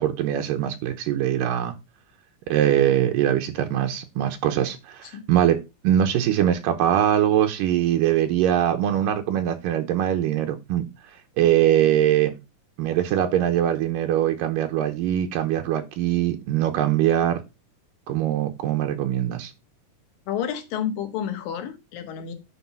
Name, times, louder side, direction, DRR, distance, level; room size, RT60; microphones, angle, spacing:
voice 1, 0.0-1.7 2.5-10.8 11.4-12.3 12.8-17.4 18.1-19.5, right 11 dB, 85° right, 2.6 m, -22 dB
voice 2, 20.3-22.3, left 9 dB, 80° left, 3.1 m, -30 dB
9.6 x 4.2 x 5.9 m
omnidirectional pair, 3.9 m